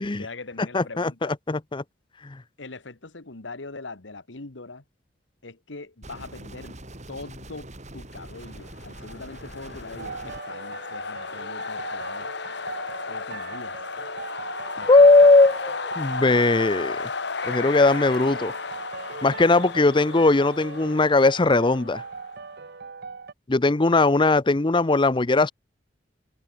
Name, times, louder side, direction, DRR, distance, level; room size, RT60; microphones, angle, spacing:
voice 1, 0.1-1.3 2.6-4.8 5.4-6.8 7.1-7.7 7.9-12.3 13.1-13.8 14.7-14.9 15.2-15.3, left 3 dB, 90° left, 1.7 m, -41 dB
voice 2, 0.7-1.8 2.2-2.4 14.9-17.1 17.5-18.5 19.2-22.0 23.5-25.5, left 3 dB, 25° left, 0.7 m, -19 dB
sound 1, 6.0-10.4, right 1 dB, 40° right, 4.8 m, -43 dB
sound 2, 8.6-22.4, left 4 dB, 65° left, 1.7 m, -34 dB
sound 3, 10.0-23.3, right 4 dB, 60° right, 0.9 m, -39 dB
head